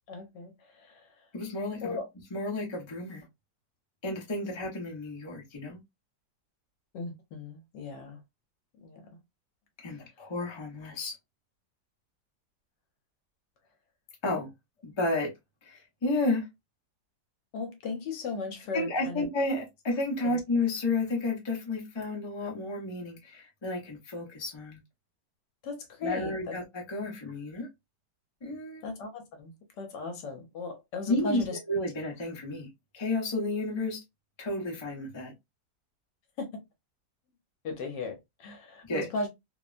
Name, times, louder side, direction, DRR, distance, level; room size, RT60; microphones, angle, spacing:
voice 1, 0.1-1.3 1.8-2.1 4.4-4.5 6.9-8.2 8.8-9.2 17.5-19.3 20.2-20.4 25.6-26.6 28.8-31.6 36.4-36.6 37.6-39.3, left 3 dB, 70° left, 1.3 m, -37 dB
voice 2, 1.3-2.0 2.3-3.3 4.0-5.8 9.8-11.1 14.2-14.5 14.8-15.3 15.6-16.4 18.7-24.8 26.0-27.7 28.4-28.8 31.1-32.7 32.9-34.0 34.4-35.3 38.8-39.0, left 2 dB, 30° left, 0.4 m, -31 dB
3.2 x 2.1 x 2.4 m
omnidirectional pair, 2.0 m